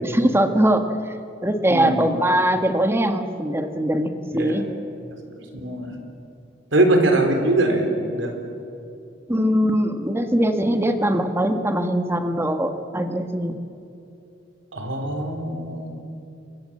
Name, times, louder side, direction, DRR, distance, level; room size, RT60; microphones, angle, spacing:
voice 1, 0.0-1.1 1.4-4.7 9.3-13.6, equal, 15° right, 7 dB, 1.5 m, -21 dB
voice 2, 1.7-2.0 4.3-4.6 5.6-6.0 6.7-8.3 14.7-16.0, right 2 dB, 75° right, 4 dB, 4.4 m, -22 dB
30.0 x 24.0 x 7.8 m, 2.7 s
head